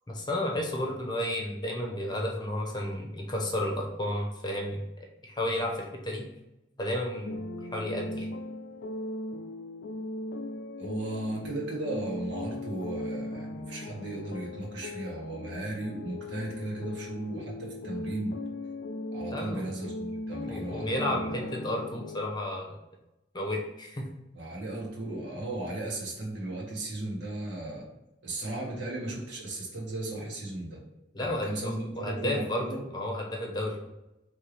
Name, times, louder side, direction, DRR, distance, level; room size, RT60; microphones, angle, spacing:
voice 1, 0.1-4.8 5.2-6.2 6.8-8.3 19.3-19.7 20.5-22.8 23.3-24.1 31.1-32.7 32.9-33.8, left 1 dB, 25° left, 0 dB, 0.8 m, -32 dB
sound 1, 7.2-22.3, left 1 dB, 75° left, 0.3 m, -38 dB
voice 2, 10.8-18.4 19.1-21.5 24.3-27.8 28.2-30.8 31.2-32.8, right 2 dB, 75° right, -3 dB, 1.5 m, -36 dB
4.6 x 3.4 x 3.3 m, 0.95 s
head